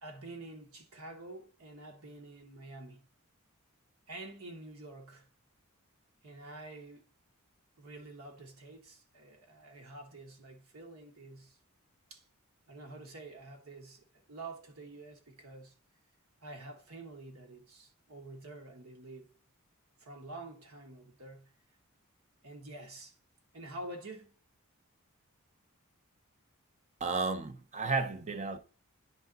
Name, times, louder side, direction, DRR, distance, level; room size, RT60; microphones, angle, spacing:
voice 1, 0.0-3.1 4.1-5.3 6.2-7.1 7.8-11.6 12.1-12.3 12.7-15.7 16.4-19.3 20.0-21.5 22.4-23.2 23.5-24.3, right 2 dB, 70° right, 1.2 m, -48 dB
voice 2, 27.0-28.6, right 4 dB, 35° right, 0.7 m, -33 dB
10.0 x 3.5 x 3.8 m
head